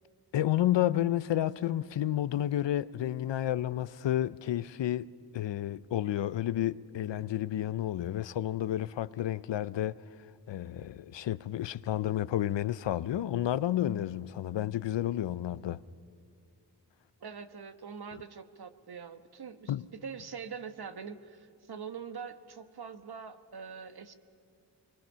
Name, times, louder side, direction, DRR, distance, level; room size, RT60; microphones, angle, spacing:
voice 1, 0.3-5.1 5.3-10.0 10.5-15.8 19.7-19.9, left 12 dB, 85° left, 0.6 m, -31 dB
voice 2, 17.2-24.1, right 6 dB, 60° right, 1.3 m, -44 dB
25.5 x 23.0 x 5.6 m
cardioid pair, 45°, 42 cm